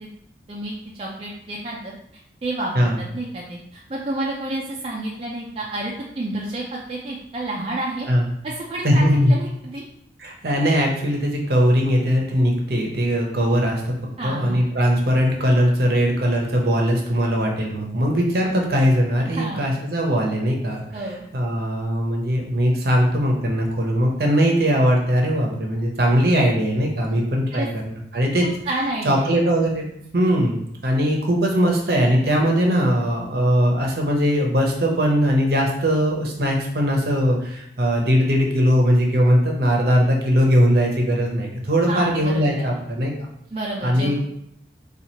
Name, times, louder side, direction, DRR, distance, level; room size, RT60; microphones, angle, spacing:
voice 1, 0.5-8.1 8.4-9.8 14.2-14.7 19.2-19.7 20.9-21.3 27.1-27.2 27.5-27.7 28.7-29.4 41.9-42.8 43.5-44.2, right 1 dB, 30° right, -3 dB, 0.4 m, -30 dB
voice 2, 8.8-9.4 10.2-13.9 14.2-20.8 21.3-27.8 28.1-28.4 29.0-29.9 30.1-30.6 30.8-43.3 43.8-44.2, equal, 60° right, 0 dB, 0.7 m, -20 dB
4.3 x 2.4 x 2.8 m, 0.74 s
head